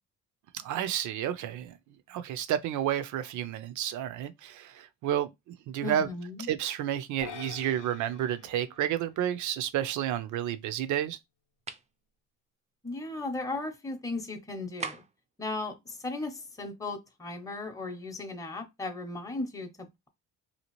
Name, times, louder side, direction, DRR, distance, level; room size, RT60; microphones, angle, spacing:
voice 1, 0.5-1.7 2.1-6.1 6.5-11.2, right 10 dB, 75° right, 0.5 m, -31 dB
voice 2, 5.8-6.5 12.8-15.0 15.4-20.1, left 2 dB, 10° left, 0.7 m, -36 dB
sound 1, 7.2-9.7, left 8 dB, 70° left, 0.6 m, -47 dB
sound 2, 11.6-11.9 14.8-15.3, right 5 dB, 25° right, 0.4 m, -38 dB
2.8 x 2.4 x 3.0 m
cardioid pair, 90°, 30 cm